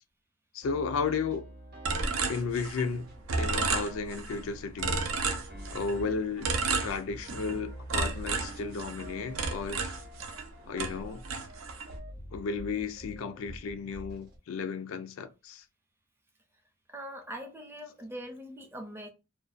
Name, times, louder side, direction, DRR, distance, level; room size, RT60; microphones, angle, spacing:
voice 1, 0.5-1.5 2.3-3.1 3.4-5.1 5.7-6.5 6.8-9.9 10.7-11.2 12.3-15.6, left 5 dB, 85° left, 0.4 m, -34 dB
sound 1, 0.6-14.4, right 1 dB, 50° right, 0.7 m, -47 dB
sound 2, 1.8-3.0 3.3-4.4 4.8-6.0 6.4-7.6 7.9-10.5 10.8-12.0, right 4 dB, 85° right, 0.5 m, -32 dB
voice 2, 16.9-19.1, equal, 10° right, 0.4 m, -42 dB
2.5 x 2.1 x 2.4 m
head